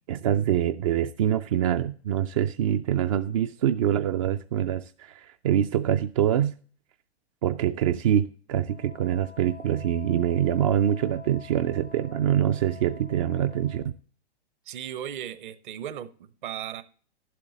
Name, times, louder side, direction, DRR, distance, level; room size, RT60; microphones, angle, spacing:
voice 1, 0.1-6.5 7.4-13.8, right 10 dB, 35° right, 0.4 m, -25 dB
Wind instrument woodwind instrument, 8.7-13.9, left 7 dB, 90° left, 1.0 m, -47 dB
voice 2, 14.7-16.8, right 10 dB, 50° right, 0.9 m, -36 dB
11.5 x 7.7 x 3.9 m
figure-of-eight pair, 105°, 33 cm